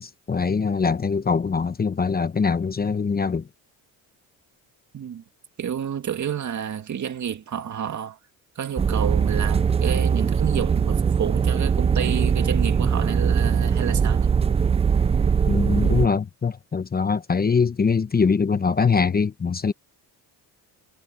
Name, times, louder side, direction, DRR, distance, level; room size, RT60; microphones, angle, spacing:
voice 1, 0.0-3.5 15.5-19.7, left 5 dB, 25° left, 0.9 m, -23 dB
voice 2, 5.6-8.2 8.6-14.3, right 8 dB, 45° right, 2.4 m, -30 dB
sound 1, 8.8-16.1, right 6 dB, 15° right, 0.3 m, -21 dB
cardioid pair, 110°, 40 cm